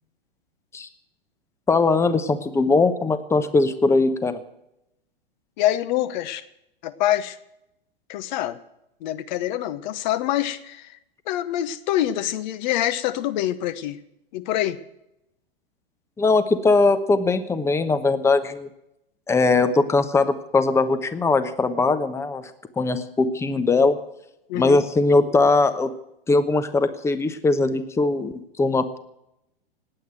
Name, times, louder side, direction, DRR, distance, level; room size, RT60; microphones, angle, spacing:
voice 1, 1.7-4.4 16.2-18.7 19.3-22.5 22.8-24.0 24.5-25.9 26.3-29.0, left 3 dB, 10° left, 11 dB, 1.0 m, -20 dB
voice 2, 5.6-6.4 6.8-7.4 8.1-8.6 9.0-11.0 11.3-14.0 14.3-14.8 24.5-24.8, left 13 dB, 50° left, 13 dB, 1.1 m, -25 dB
19.0 x 8.8 x 7.6 m, 0.84 s
hypercardioid pair, 110°, 30 cm